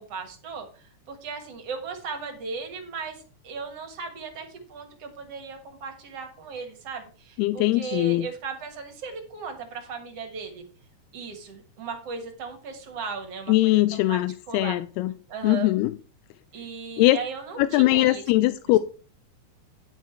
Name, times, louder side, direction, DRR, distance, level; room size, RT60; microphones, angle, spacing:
voice 1, 0.0-10.6 11.1-14.2 14.5-14.8 15.3-15.7 16.5-18.6, right 5 dB, 55° right, 1.9 m, -37 dB
voice 2, 7.4-8.3 13.5-15.1 15.4-15.9 17.0-17.2 17.6-18.8, left 17 dB, 85° left, 2.5 m, -21 dB
10.5 x 6.6 x 4.5 m
omnidirectional pair, 4.5 m